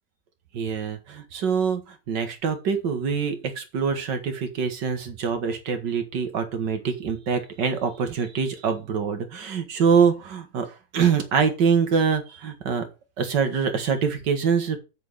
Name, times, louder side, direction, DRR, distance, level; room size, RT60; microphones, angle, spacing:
voice 1, 0.5-12.9 13.2-14.8, right 6 dB, 75° right, 7 dB, 2.1 m, -24 dB
7.7 x 6.5 x 4.8 m, 0.29 s
omnidirectional pair, 2.0 m